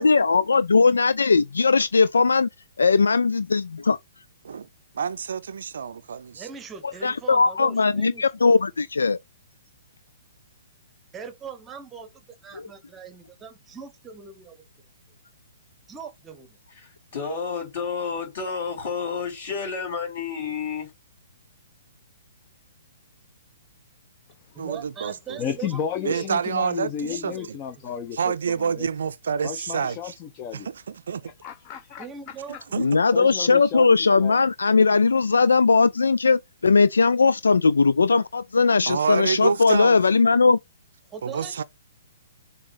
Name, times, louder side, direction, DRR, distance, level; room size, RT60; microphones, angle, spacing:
voice 1, 0.0-2.5 2.8-4.0 6.8-9.2 32.8-40.6, left 4 dB, 65° left, 0.3 m, -19 dB
voice 2, 4.9-6.5 24.6-25.4 26.0-27.6 28.1-30.1 30.5-31.3 32.7-32.9 38.9-40.0 41.2-41.6, right 6 dB, 55° right, 0.5 m, -28 dB
voice 3, 6.3-8.2 11.1-12.1 12.4-14.7 15.9-16.6 24.5-26.3 27.0-27.5 32.0-33.0 41.1-41.6, right 6 dB, 15° right, 1.0 m, -40 dB
voice 4, 16.7-20.9, left 5 dB, 50° left, 3.9 m, -30 dB
voice 5, 25.4-28.9 29.4-30.7 31.2-32.1 32.5-32.6 33.1-34.4, left 8 dB, 25° left, 0.8 m, -33 dB
6.9 x 3.0 x 5.0 m
figure-of-eight pair, 120°, 0 cm